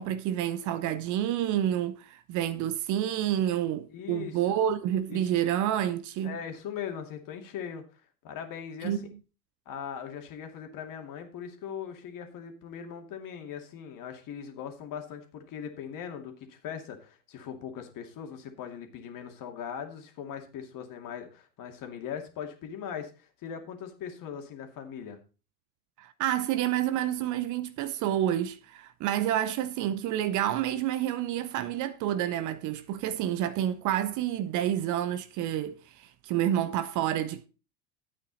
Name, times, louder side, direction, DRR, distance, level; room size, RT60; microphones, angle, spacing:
voice 1, 0.0-6.4 8.8-9.1 26.0-37.5, right 11 dB, 40° right, 0.8 m, -29 dB
voice 2, 3.9-4.4 5.1-5.4 6.2-9.0 9.7-25.2, left 8 dB, 40° left, 2.4 m, -40 dB
11.0 x 8.6 x 4.0 m
figure-of-eight pair, 80°, 49 cm